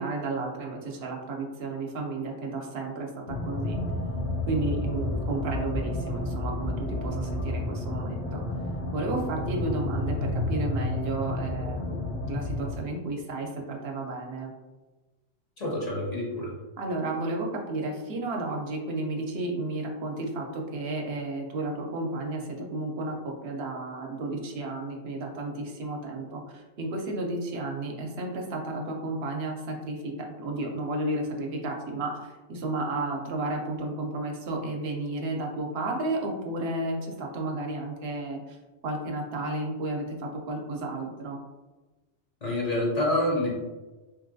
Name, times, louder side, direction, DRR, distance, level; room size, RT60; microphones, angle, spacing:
voice 1, 0.0-3.8 4.5-8.4 8.9-14.5 16.8-30.1 30.4-38.6 38.8-41.4, right 2 dB, 70° right, 1 dB, 0.8 m, -32 dB
sound 1, 3.3-12.8, left 2 dB, 70° left, 0.8 m, -31 dB
voice 2, 15.6-16.5 42.4-43.5, left 1 dB, 45° left, -3 dB, 0.6 m, -27 dB
3.0 x 2.8 x 2.6 m, 1.2 s
omnidirectional pair, 1.1 m